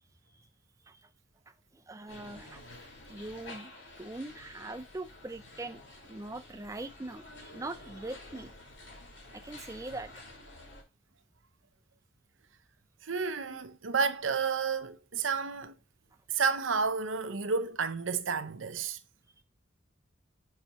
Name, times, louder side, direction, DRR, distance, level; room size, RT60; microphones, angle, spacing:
voice 1, 1.7-2.7 3.0-3.7 4.0-5.8 6.1-8.5 9.3-10.1, right 2 dB, 15° right, 0.5 m, -42 dB
Seven Sisters - Underground station (waiting for train), 2.1-10.8, left 2 dB, 75° left, 2.6 m, -50 dB
voice 2, 13.0-15.7 16.3-19.0, right 5 dB, 85° right, 0.7 m, -31 dB
5.8 x 4.4 x 5.4 m
head